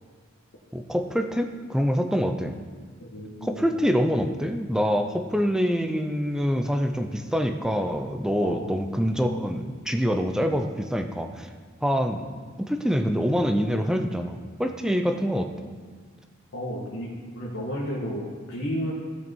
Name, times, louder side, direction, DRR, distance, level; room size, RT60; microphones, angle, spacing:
voice 1, 0.7-2.5 3.4-11.5 11.8-12.3 12.6-15.7, equal, 5° right, 6 dB, 0.6 m, -25 dB
voice 2, 3.0-3.7 8.4-8.7 16.5-18.9, equal, 65° left, -5 dB, 1.5 m, -32 dB
16.0 x 5.9 x 4.5 m, 1.5 s
head